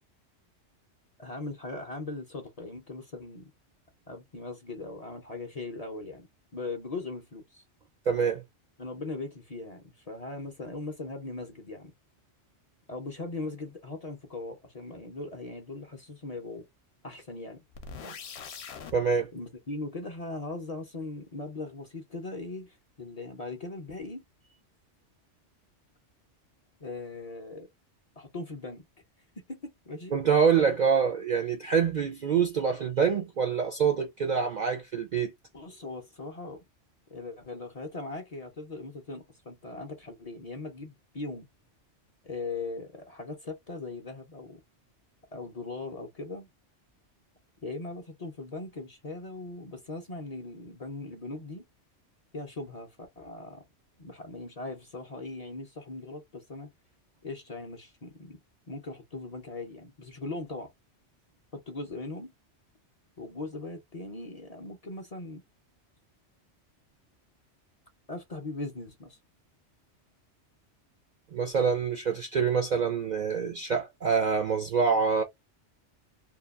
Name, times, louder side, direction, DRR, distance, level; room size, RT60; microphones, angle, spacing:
voice 1, 1.2-3.5 4.1-6.3 6.5-7.6 8.8-11.9 12.9-16.7 17.0-17.6 19.3-24.2 26.8-27.7 28.2-28.9 29.5-30.1 35.5-36.6 37.1-41.5 42.2-44.6 45.3-46.5 47.6-51.6 52.3-53.6 54.0-56.7 57.2-58.4 58.7-60.7 61.5-62.3 63.2-65.4 68.1-69.2, left 3 dB, 40° left, 0.6 m, -39 dB
voice 2, 8.1-8.4 18.0-18.1 18.9-19.3 30.1-35.3 71.3-75.2, right 6 dB, 60° right, 0.5 m, -26 dB
sound 1, 17.7-18.9, left 6 dB, 65° left, 0.9 m, -42 dB
2.8 x 2.3 x 2.3 m
omnidirectional pair, 1.2 m